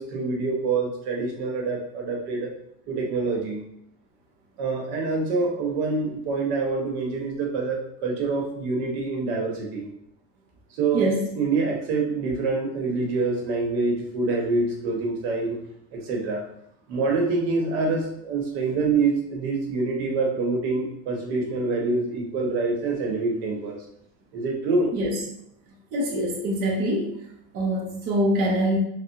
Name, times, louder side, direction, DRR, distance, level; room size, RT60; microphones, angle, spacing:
voice 1, 0.0-2.5 2.9-3.6 4.6-9.9 10.7-11.1 11.3-15.6 15.9-16.4 16.9-23.8 24.3-24.9, right 3 dB, 75° right, 0 dB, 0.9 m, -26 dB
voice 2, 25.9-27.1 27.5-28.8, right 1 dB, 30° right, -3 dB, 0.5 m, -24 dB
3.4 x 2.1 x 2.8 m, 0.74 s
cardioid pair, 175°, 31 cm